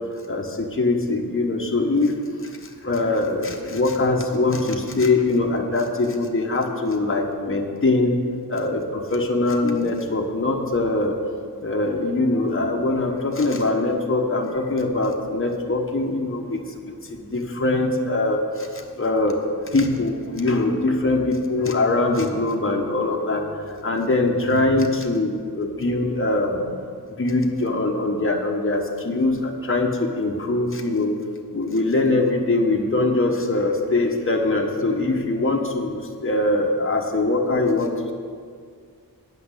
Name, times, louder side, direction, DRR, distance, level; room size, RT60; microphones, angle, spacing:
voice 1, 0.3-2.1 2.8-8.2 8.5-11.1 11.6-16.6 17.1-19.4 19.7-23.4 23.8-26.6 27.2-31.1 31.5-36.0 36.2-37.9, left 2 dB, 35° left, 1 dB, 1.1 m, -22 dB
9.1 x 5.9 x 8.2 m, 2.1 s
wide cardioid pair, 75°, 39 cm